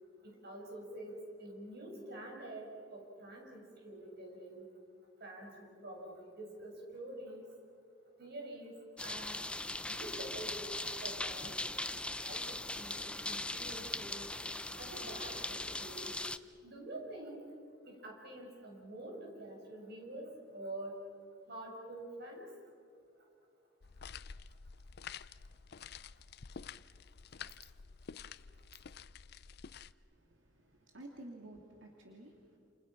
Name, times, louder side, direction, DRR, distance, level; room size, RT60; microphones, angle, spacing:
voice 1, 0.2-4.7 5.2-7.5 8.2-9.4 9.9-10.7 11.0-11.7 12.2-14.4 14.7-16.2 16.6-21.0 21.5-22.5 25.0-25.1 25.8-25.9, right 1 dB, 55° right, 0 dB, 6.9 m, -47 dB
sound 1, 9.0-16.4, left 2 dB, 5° left, 0.6 m, -40 dB
sound 2, 23.8-29.9, left 6 dB, 60° left, 0.6 m, -50 dB
voice 2, 30.1-32.6, right 1 dB, 90° right, 1 dB, 2.6 m, -52 dB
29.0 x 28.5 x 6.0 m, 2.3 s
head